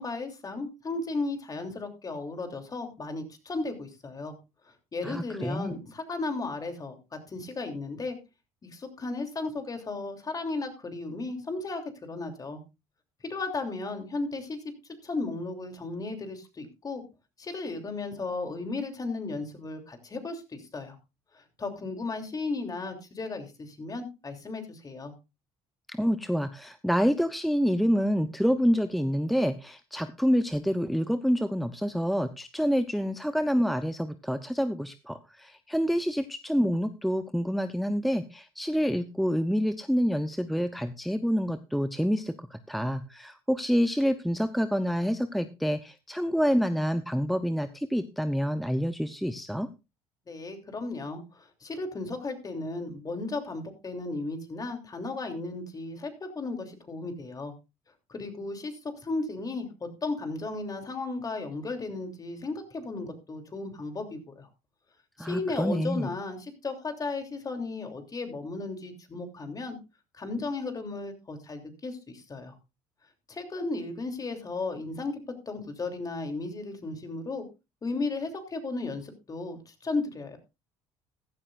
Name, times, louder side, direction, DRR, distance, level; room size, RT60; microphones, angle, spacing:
voice 1, 0.0-4.3 4.9-7.0 7.3-8.2 8.6-12.6 13.3-14.6 15.0-17.0 17.4-21.0 21.3-25.1 50.3-57.5 58.1-58.7 59.0-64.5 65.2-69.8 70.2-72.5 73.3-75.2 75.5-77.4 77.8-80.4, left 3 dB, 30° left, 6 dB, 3.1 m, -35 dB
voice 2, 5.0-5.7 25.9-49.7 65.2-66.1, equal, ahead, 11 dB, 0.7 m, -27 dB
15.5 x 12.0 x 2.5 m, 0.27 s
supercardioid pair, 85°, 13 cm